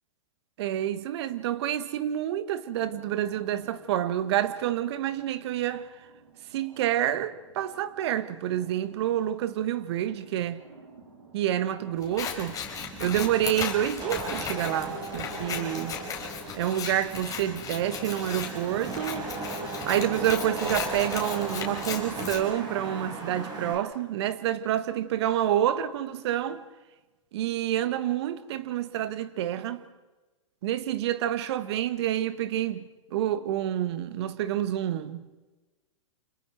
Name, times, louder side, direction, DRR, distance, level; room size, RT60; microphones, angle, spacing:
voice 1, 0.6-5.9 6.5-10.6 11.3-12.6 13.0-16.0 16.5-19.3 19.9-26.6 27.3-29.8 30.6-32.8 33.1-35.3, right 11 dB, 55° right, 1.5 m, -28 dB
sound 1, 2.7-12.9, right 4 dB, 80° right, 5.8 m, -55 dB
Scissors, 12.0-22.4, left 7 dB, 20° left, 4.8 m, -36 dB
Wind / Rain, 12.3-23.8, right 2 dB, 25° right, 5.6 m, -37 dB
30.0 x 27.0 x 4.6 m
hypercardioid pair, 115°, 16 cm